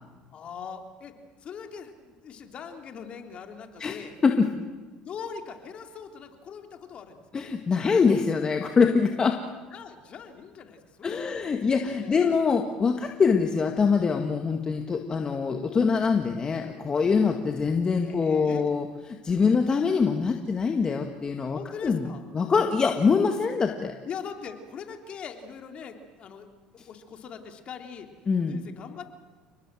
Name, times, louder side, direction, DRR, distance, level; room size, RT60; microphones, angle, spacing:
voice 1, 0.3-4.1 5.0-7.2 9.7-11.5 11.9-12.3 18.0-18.7 21.5-22.2 24.0-26.5 26.7-28.1 28.4-29.1, left 6 dB, 45° left, 5 dB, 3.5 m, -42 dB
voice 2, 7.3-9.4 11.0-18.9 19.2-22.1 22.3-23.9 28.3-28.5, left 5 dB, 30° left, 5 dB, 2.0 m, -24 dB
30.0 x 19.5 x 7.7 m, 1.3 s
supercardioid pair, 85°, 3 cm